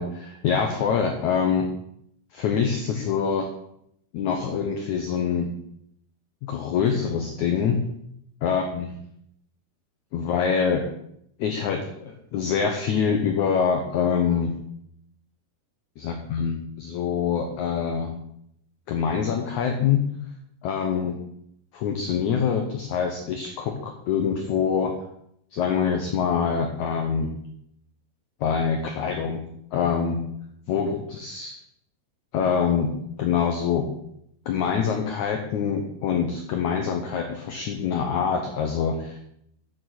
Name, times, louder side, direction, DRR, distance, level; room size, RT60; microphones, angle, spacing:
voice 1, 0.0-1.7 2.3-3.5 4.1-5.5 6.5-7.8 8.4-8.9 10.1-10.8 11.4-14.5 16.0-18.1 18.9-20.0 20.6-21.2 21.7-25.0 25.5-27.3 28.4-29.4 29.7-30.2 30.7-31.5 32.3-32.9 33.2-33.9 34.5-39.2, left 6 dB, 85° left, 4 dB, 1.7 m, -25 dB
9.3 x 7.1 x 6.0 m, 0.73 s
omnidirectional pair, 4.7 m